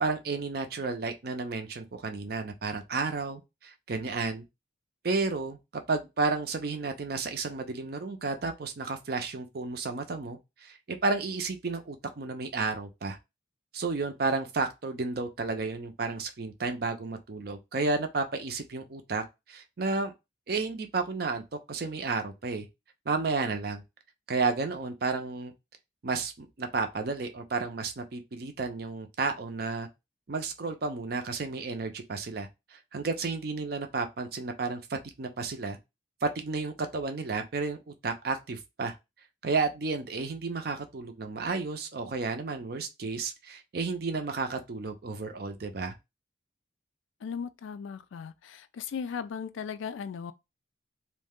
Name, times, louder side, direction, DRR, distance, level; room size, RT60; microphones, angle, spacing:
voice 1, 0.0-4.4 5.0-13.2 13.7-20.1 20.5-21.4 21.7-22.7 23.1-23.8 24.3-25.5 26.0-29.9 30.3-35.8 36.2-38.9 39.4-45.9, right 3 dB, 55° right, 0.5 m, -32 dB
voice 2, 47.2-50.3, left 6 dB, 85° left, 0.3 m, -37 dB
2.6 x 2.1 x 3.5 m
head